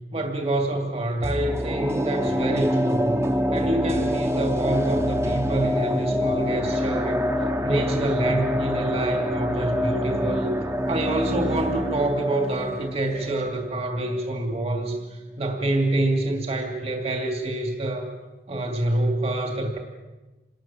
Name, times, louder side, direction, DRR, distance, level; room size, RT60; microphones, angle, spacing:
voice 1, 0.1-3.2 3.5-7.2 7.6-10.5 10.9-18.1 18.5-19.8, right 2 dB, 35° right, 3 dB, 2.9 m, -26 dB
sound 1, 1.2-14.3 14.6-14.7, equal, 15° right, 1.2 m, -26 dB
27.0 x 20.5 x 7.4 m, 1.1 s
head